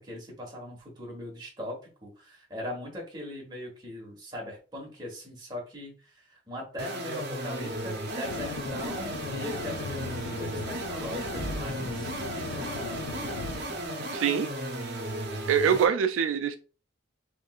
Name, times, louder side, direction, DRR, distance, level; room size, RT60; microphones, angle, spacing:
voice 1, 0.0-14.2, left 1 dB, 25° right, 1.3 m, -40 dB
sound 1, 6.8-15.9, right 1 dB, 55° right, 0.7 m, -35 dB
sound 2, 7.6-13.9, right 1 dB, 40° right, 1.6 m, -45 dB
sound 3, 8.2-13.6, left 5 dB, 85° left, 0.4 m, -39 dB
voice 2, 14.1-14.5 15.5-16.6, right 7 dB, 85° right, 0.3 m, -24 dB
3.5 x 3.1 x 2.4 m
head